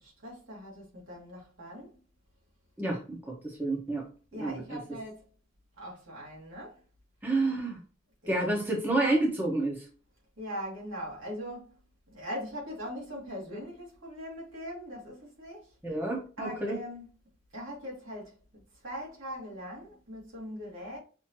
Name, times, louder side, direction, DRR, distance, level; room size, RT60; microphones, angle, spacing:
voice 1, 0.0-2.0 4.3-5.3 5.8-6.8 8.2-8.5 10.4-11.7 12.1-15.7 16.4-17.0 17.5-18.4 18.8-21.0, equal, 80° right, 2.1 m, -41 dB
voice 2, 2.8-3.2 3.4-4.0 4.4-4.8 7.2-7.8 8.3-9.8 15.8-16.8, right 2 dB, 10° right, 0.9 m, -29 dB
5.9 x 2.7 x 3.0 m
head